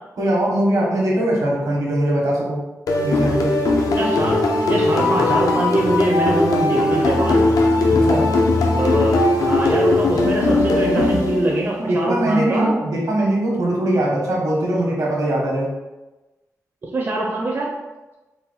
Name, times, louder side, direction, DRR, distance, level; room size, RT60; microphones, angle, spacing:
voice 1, 0.2-2.6 3.0-3.6 8.0-8.3 11.9-15.7, right 1 dB, 75° right, -3 dB, 1.2 m, -21 dB
sound 1, 2.9-11.8, left 2 dB, 80° left, 0.6 m, -18 dB
voice 2, 3.9-4.4 4.7-7.5 8.5-12.7 16.9-17.7, right 2 dB, 35° right, -2 dB, 0.5 m, -23 dB
4.1 x 2.2 x 3.9 m, 1.1 s
wide cardioid pair, 160°, 6 cm